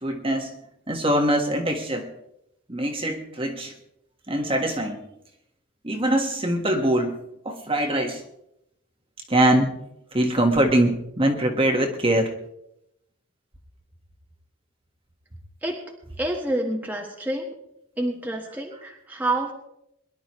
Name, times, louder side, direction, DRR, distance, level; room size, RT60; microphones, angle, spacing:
voice 1, 0.0-2.1 2.7-3.7 4.3-5.0 5.8-7.2 7.4-8.2 9.3-9.7 10.1-12.3, right 1 dB, 25° right, 2 dB, 1.5 m, -23 dB
voice 2, 16.2-17.5 18.0-19.5, right 1 dB, 10° right, -1 dB, 1.4 m, -28 dB
22.5 x 11.5 x 3.1 m, 0.78 s
head